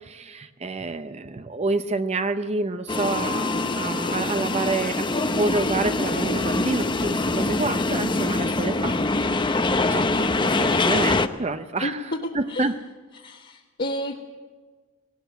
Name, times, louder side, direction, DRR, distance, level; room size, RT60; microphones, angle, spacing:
voice 1, 0.0-9.0 9.9-12.8, right 3 dB, 30° right, 10 dB, 0.7 m, -28 dB
sound 1, 2.9-11.3, left 2 dB, 20° left, 0.7 m, -24 dB
voice 2, 11.8-12.7 13.1-14.2, left 1 dB, 45° left, -2 dB, 1.6 m, -31 dB
18.5 x 18.5 x 8.0 m, 1.4 s
head